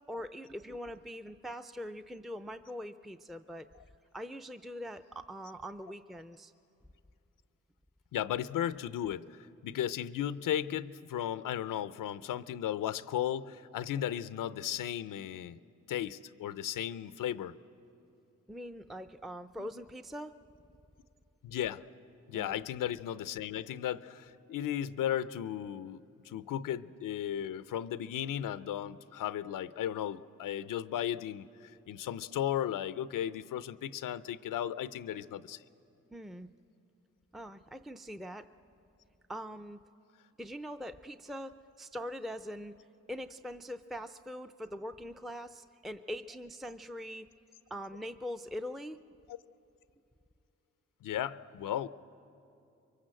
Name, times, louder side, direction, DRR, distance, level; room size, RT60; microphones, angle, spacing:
voice 1, 0.1-3.7 4.1-6.5 18.5-20.3 22.3-22.6 36.1-36.5 37.3-38.5 39.3-39.8 40.4-42.7 43.1-47.3 47.7-49.0, equal, ahead, 8 dB, 0.5 m, -42 dB
voice 2, 8.1-15.6 15.9-17.6 19.6-19.7 21.4-21.8 22.3-35.6 49.3-49.4 51.0-51.9, left 10 dB, 90° left, 15 dB, 0.7 m, -35 dB
25.0 x 23.5 x 7.7 m, 2.8 s
cardioid pair, 75°, 31 cm